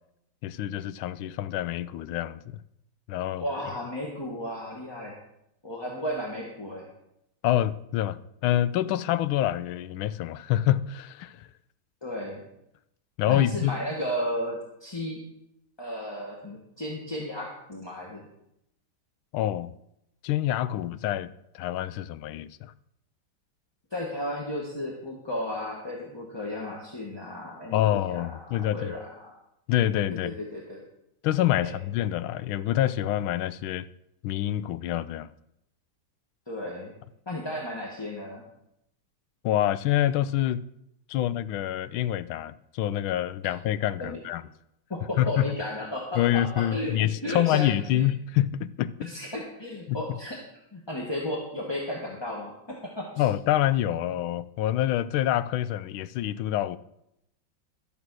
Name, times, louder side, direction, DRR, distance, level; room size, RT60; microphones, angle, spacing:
voice 1, 0.4-2.6 3.1-3.4 7.4-11.5 13.2-13.7 19.3-19.7 20.2-22.7 27.7-29.0 29.7-30.4 31.2-33.9 34.2-35.3 39.4-40.6 41.1-44.4 45.2-45.5 46.1-49.1 49.9-50.2 53.2-56.8, left 12 dB, 85° left, 15 dB, 1.4 m, -26 dB
voice 2, 3.4-5.1 5.6-6.9 12.0-12.4 13.3-15.2 15.8-18.3 23.9-29.3 30.2-30.8 31.6-31.8 36.5-36.9 37.3-38.4 44.0-44.2 44.9-47.0 47.2-48.0 49.0-50.4 50.7-53.2, left 1 dB, 15° left, -3 dB, 1.3 m, -34 dB
12.5 x 6.3 x 6.2 m, 0.81 s
omnidirectional pair, 2.2 m